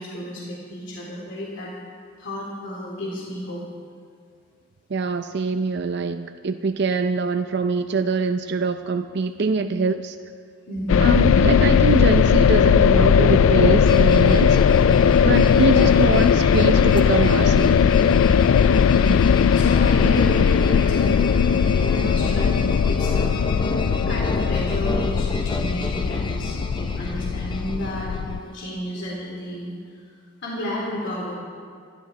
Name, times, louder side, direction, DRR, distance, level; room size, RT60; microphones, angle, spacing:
voice 1, 0.0-1.7 2.2-3.6 10.7-11.2 18.9-23.4 23.8-29.7 30.4-31.3, equal, 60° left, -4 dB, 3.4 m, -32 dB
voice 2, 4.9-10.2 11.0-14.6 14.9-17.8, right 4 dB, 55° right, 7 dB, 0.5 m, -24 dB
sound 1, 10.9-28.4, left 7 dB, 80° left, 0.3 m, -18 dB
sound 2, 12.9-28.4, left 1 dB, 25° left, 0.8 m, -29 dB
26.5 x 12.0 x 4.1 m, 2.2 s
head